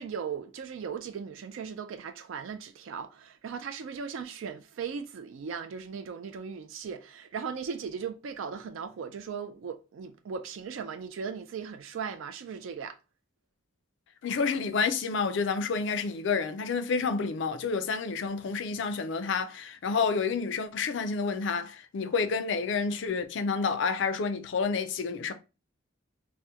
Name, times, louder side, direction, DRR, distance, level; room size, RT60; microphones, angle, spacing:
voice 1, 0.0-13.0, right 6 dB, 70° right, 0.3 m, -38 dB
voice 2, 14.2-25.3, left 5 dB, 60° left, 0.4 m, -29 dB
2.8 x 2.1 x 3.4 m
head